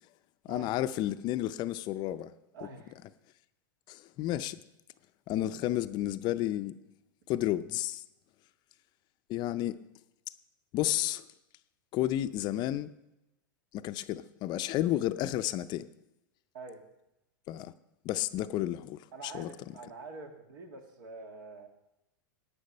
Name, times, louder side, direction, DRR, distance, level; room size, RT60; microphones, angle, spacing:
voice 1, 0.5-2.3 3.9-4.6 5.3-6.7 7.3-8.0 9.3-9.8 10.7-11.2 11.9-12.9 13.7-15.9 17.5-17.7 18.0-19.0 19.3-19.5, left 14 dB, 40° left, 0.5 m, -31 dB
voice 2, 2.5-2.9 16.5-16.8 19.1-21.7, right 3 dB, 70° right, 1.9 m, -46 dB
10.5 x 9.0 x 5.4 m
hypercardioid pair, 110°, 11 cm